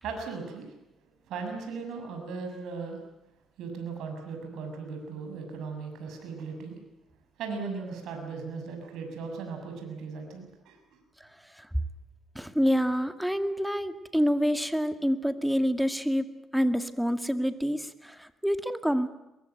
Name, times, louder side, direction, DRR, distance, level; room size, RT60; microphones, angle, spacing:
voice 1, 0.0-0.7 1.3-3.0 3.6-6.8 7.4-11.0, right 4 dB, 85° right, 4 dB, 7.0 m, -37 dB
voice 2, 12.4-19.1, equal, ahead, 9 dB, 2.0 m, -27 dB
22.5 x 22.5 x 9.3 m, 0.94 s
cardioid pair, 90°, 0 cm